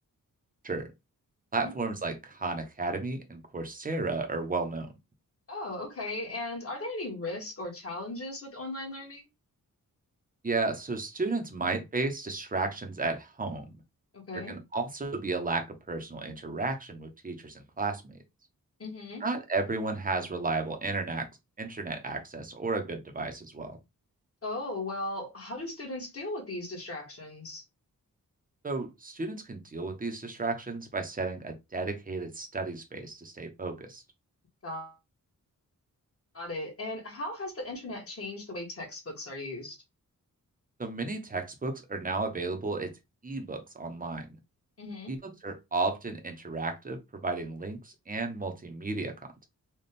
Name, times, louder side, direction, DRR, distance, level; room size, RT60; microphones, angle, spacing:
voice 1, 1.5-4.9 10.4-13.7 14.5-18.2 19.2-21.3 21.6-23.8 28.6-34.0 40.8-42.9 43.2-44.4 45.1-45.2 45.4-49.1, right 3 dB, 25° right, 0.9 m, -33 dB
voice 2, 5.5-9.2 11.7-11.8 14.1-14.6 18.8-19.2 24.4-27.6 34.6-35.0 36.3-39.8 44.8-45.2, left 2 dB, 45° left, 1.8 m, -37 dB
4.2 x 2.5 x 3.4 m
wide cardioid pair, 140°, 33 cm